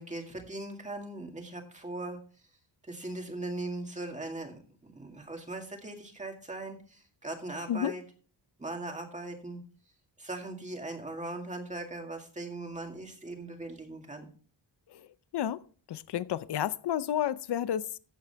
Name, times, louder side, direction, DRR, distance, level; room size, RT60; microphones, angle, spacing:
voice 1, 0.0-2.2 2.8-8.0 8.6-9.6 10.2-14.3, right 2 dB, 15° right, 2.0 m, -39 dB
voice 2, 15.3-15.6 15.9-18.0, left 10 dB, 65° left, 0.7 m, -31 dB
14.5 x 7.8 x 3.4 m
wide cardioid pair, 175°, 45 cm